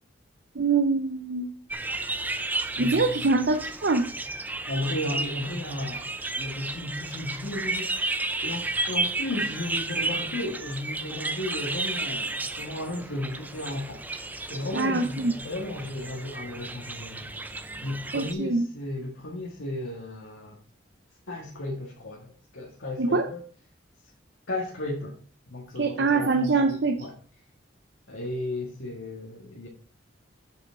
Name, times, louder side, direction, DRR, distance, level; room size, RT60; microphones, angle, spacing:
voice 1, 0.5-1.6 2.8-4.0 14.7-15.3 18.1-18.6 23.0-23.3 25.8-27.0, right 3 dB, 60° right, 6 dB, 0.6 m, -24 dB
sound 1, 1.7-18.3, right 2 dB, 10° right, 0.4 m, -33 dB
voice 2, 2.8-3.3 4.7-6.1 6.4-8.0 8.4-14.1 14.5-17.3 17.8-20.6 21.3-23.5 24.5-25.2 25.5-27.1 28.1-29.7, left 1 dB, 75° left, -3 dB, 1.7 m, -34 dB
7.8 x 7.0 x 3.8 m, 0.43 s
head